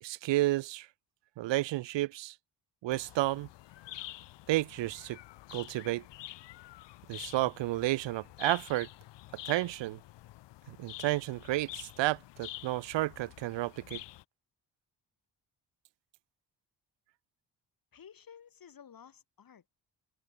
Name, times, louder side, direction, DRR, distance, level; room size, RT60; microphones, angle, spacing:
voice 1, 0.0-0.9 1.4-2.3 2.8-3.5 4.5-5.2 5.5-6.0 7.1-8.9 9.5-10.0 10.7-14.0, right 16 dB, 90° right, 0.7 m, -31 dB
sound 1, 2.9-14.2, left 16 dB, 75° left, 0.6 m, -48 dB
voice 2, 17.9-19.7, left 8 dB, 55° left, 3.7 m, -54 dB
cardioid pair, 110°, 43 cm